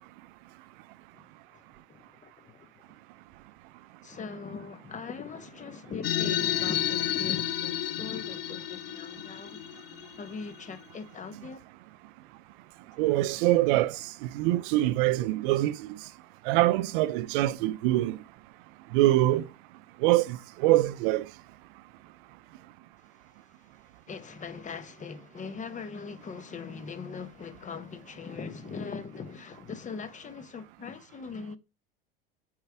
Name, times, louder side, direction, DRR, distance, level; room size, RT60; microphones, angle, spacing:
voice 1, 1.9-2.7 4.0-9.6 10.2-11.6 24.1-31.6, left 5 dB, 25° left, 1.1 m, -40 dB
sound 1, 6.0-10.9, left 12 dB, 75° left, 0.9 m, -31 dB
voice 2, 13.0-14.0 14.3-15.9 16.5-18.2 18.9-19.4 20.0-20.4 20.6-21.2, right 16 dB, 60° right, 0.6 m, -24 dB
7.9 x 4.8 x 3.5 m
hypercardioid pair, 85°, 30 cm